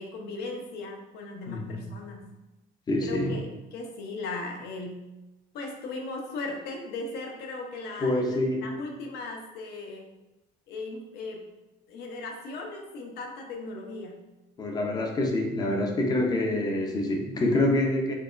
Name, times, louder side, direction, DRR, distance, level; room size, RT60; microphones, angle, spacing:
voice 1, 0.0-2.2 3.0-5.0 5.5-10.0 10.7-11.4 11.9-14.2, left 3 dB, 65° left, 2 dB, 0.7 m, -37 dB
voice 2, 1.5-1.8 2.9-3.4 8.0-8.7 14.6-18.1, left 1 dB, 20° left, 2 dB, 0.5 m, -26 dB
4.6 x 2.9 x 2.4 m, 1.0 s
cardioid pair, 155°, 18 cm